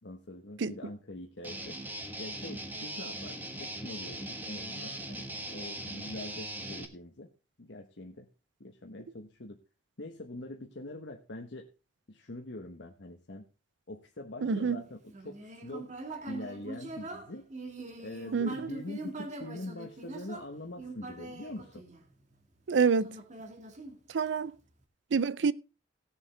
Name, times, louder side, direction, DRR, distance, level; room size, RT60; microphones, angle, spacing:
voice 1, 0.0-1.8 2.2-7.3 7.6-8.3 8.6-9.6 10.0-11.7 12.1-13.4 13.9-15.9 16.3-17.5 18.0-21.8, left 1 dB, 70° left, 1.2 m, -44 dB
Guitar, 1.4-6.9, right 1 dB, 10° right, 1.4 m, -40 dB
voice 2, 14.4-14.8 18.3-18.5 22.7-23.1 24.1-24.5 25.1-25.5, right 5 dB, 75° right, 0.5 m, -27 dB
Human voice, 15.1-22.4 23.0-24.5, right 2 dB, 40° right, 1.7 m, -43 dB
18.0 x 7.2 x 3.3 m
head